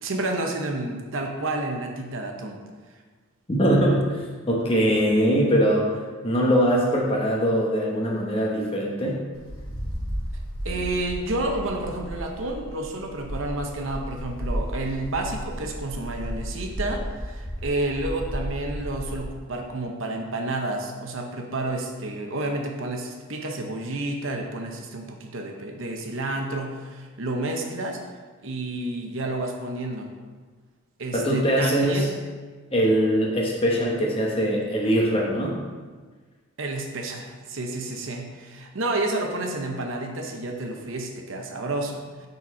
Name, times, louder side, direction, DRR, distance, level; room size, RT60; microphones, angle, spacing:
voice 1, 0.0-2.6 10.6-28.0 28.4-30.1 31.0-32.1 36.6-42.3, right 2 dB, 60° right, 3 dB, 0.8 m, -30 dB
voice 2, 3.5-4.0 4.5-9.2 31.1-32.1 32.7-35.6, equal, 25° left, -2 dB, 1.0 m, -22 dB
Wind, 9.3-19.4, equal, 75° left, 1.1 m, -33 dB
6.8 x 4.2 x 4.7 m, 1.4 s
head